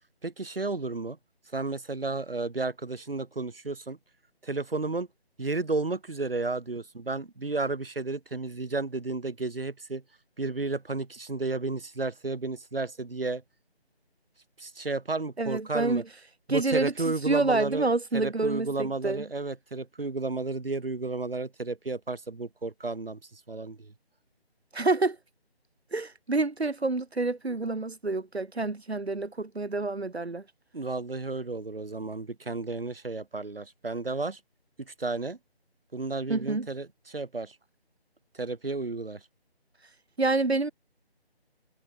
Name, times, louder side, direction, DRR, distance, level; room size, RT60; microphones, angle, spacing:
voice 1, 0.2-1.2 1.5-4.0 4.4-5.1 5.4-10.0 10.4-13.4 14.6-16.0 16.5-17.9 18.1-23.9 30.7-34.4 34.8-35.4 35.9-37.6 38.3-39.2, right 3 dB, 60° right, 4.2 m, -32 dB
voice 2, 15.4-16.0 16.5-16.9 17.3-19.3 24.7-25.2 25.9-30.4 36.3-36.7 40.2-40.7, right 3 dB, 75° right, 2.3 m, -28 dB
figure-of-eight pair, 160°, 32 cm